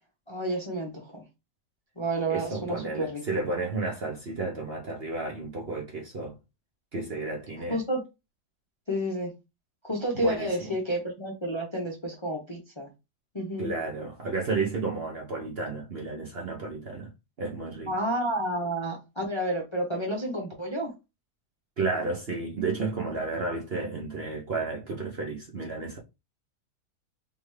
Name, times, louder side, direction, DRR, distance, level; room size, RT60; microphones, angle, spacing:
voice 1, 0.3-1.2 2.0-3.2 7.7-8.0 8.9-9.3 9.8-12.9 13.3-13.7 17.9-20.9, right 1 dB, 25° left, 0.7 m, -30 dB
voice 2, 2.3-6.4 6.9-7.8 10.2-10.7 13.6-17.1 17.4-17.9 21.8-26.0, right 3 dB, 45° right, 0.9 m, -32 dB
3.6 x 3.4 x 3.2 m
omnidirectional pair, 1.7 m